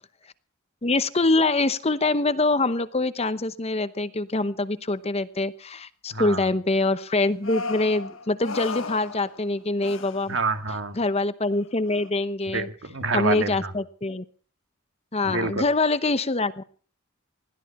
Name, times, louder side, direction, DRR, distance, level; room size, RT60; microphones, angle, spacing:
voice 1, 0.8-10.4 11.0-12.7 13.1-14.2 15.1-16.6, left 2 dB, 30° left, 13 dB, 0.9 m, -24 dB
voice 2, 6.1-6.5 10.3-11.0 12.5-13.7 15.2-15.7, right 3 dB, 60° right, 8 dB, 1.9 m, -27 dB
sound 1, 7.4-9.5 9.8-10.4 10.7-10.8 11.6-12.1, left 4 dB, 70° left, 1.5 m, -35 dB
20.5 x 15.0 x 4.3 m, 0.43 s
head